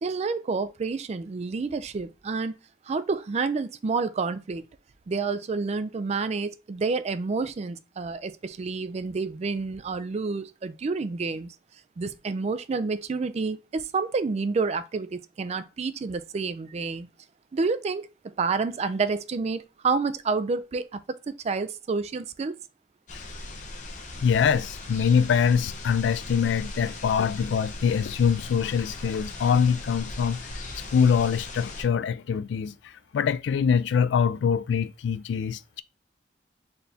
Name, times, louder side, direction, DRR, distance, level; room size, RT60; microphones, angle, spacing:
voice 1, 0.0-2.6 2.9-4.6 5.1-11.5 12.0-17.1 17.5-18.1 18.4-22.6, right 4 dB, 35° right, 0.3 m, -29 dB
sound 1, 23.1-31.8, left 2 dB, 45° left, 0.7 m, -39 dB
voice 2, 24.2-30.4 30.9-32.7 33.1-35.8, left 7 dB, 75° left, 0.3 m, -24 dB
4.3 x 3.4 x 2.7 m
head